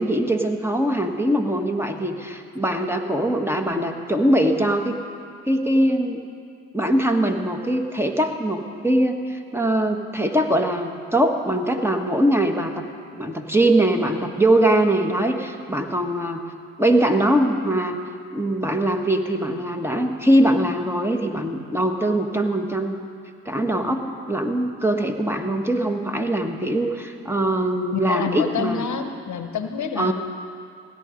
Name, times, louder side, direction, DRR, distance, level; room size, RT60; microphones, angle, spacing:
voice 1, 0.0-5.0 5.5-6.2 6.7-12.8 13.1-16.4 16.8-18.0 18.3-23.0 23.4-28.9 30.0-30.1, right 1 dB, 5° right, 4 dB, 1.5 m, -22 dB
voice 2, 27.9-30.1, left 6 dB, 55° left, 8 dB, 1.0 m, -27 dB
16.5 x 11.0 x 5.2 m, 2.2 s
hypercardioid pair, 45°, 34 cm